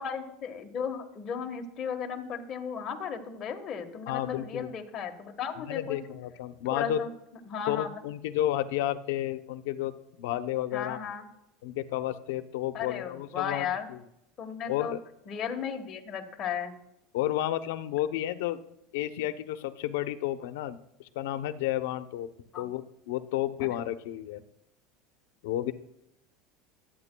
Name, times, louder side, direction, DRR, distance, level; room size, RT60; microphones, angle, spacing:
voice 1, 0.0-6.0 6.7-7.1 7.5-7.9 10.7-11.3 12.7-13.9 14.4-14.9 15.3-16.7 22.5-22.7, left 7 dB, 35° left, 4 dB, 1.3 m, -35 dB
voice 2, 4.1-4.7 5.7-7.0 7.7-11.0 11.6-13.7 14.7-15.0 17.1-18.6 18.9-22.3 22.6-24.4 25.4-25.7, left 13 dB, 85° left, 11 dB, 0.7 m, -31 dB
23.5 x 8.9 x 2.2 m, 0.83 s
supercardioid pair, 145°, 0 cm